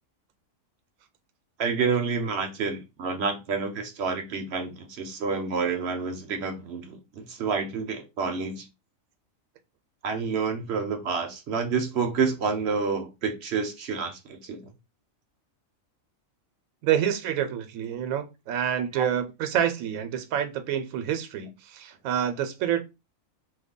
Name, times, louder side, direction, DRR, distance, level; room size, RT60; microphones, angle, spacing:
voice 1, 1.6-8.7 10.0-14.6 18.9-19.1, right 5 dB, 60° right, 0.8 m, -29 dB
voice 2, 16.8-22.8, right 9 dB, 85° right, 1.0 m, -27 dB
3.2 x 2.2 x 3.6 m
omnidirectional pair, 1.4 m